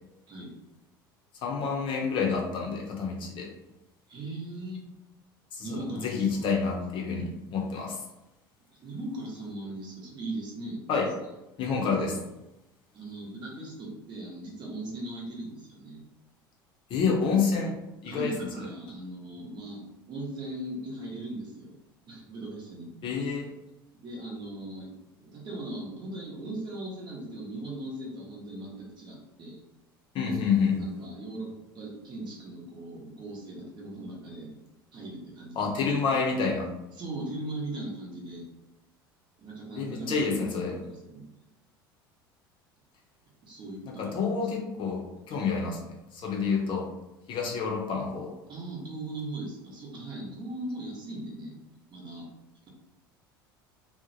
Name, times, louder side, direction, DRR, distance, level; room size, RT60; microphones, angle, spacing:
voice 1, 1.4-3.5 5.5-8.0 10.9-11.1 11.6-12.2 16.9-17.8 18.0-18.3 23.0-23.5 30.1-30.8 35.6-36.7 39.8-40.7 44.0-46.9 47.3-48.3, left 5 dB, 45° left, -1 dB, 0.6 m, -28 dB
voice 2, 4.1-4.9 5.6-6.5 8.7-10.8 12.9-16.0 18.0-21.8 22.1-23.2 24.0-24.9 25.2-29.6 30.2-31.5 31.7-34.5 34.9-36.1 36.9-38.5 39.4-41.2 43.4-44.4 45.3-45.5 48.5-51.6 51.9-52.3, right 1 dB, 40° right, -3 dB, 0.9 m, -39 dB
2.7 x 2.1 x 2.6 m, 0.93 s
figure-of-eight pair, 70°, 12 cm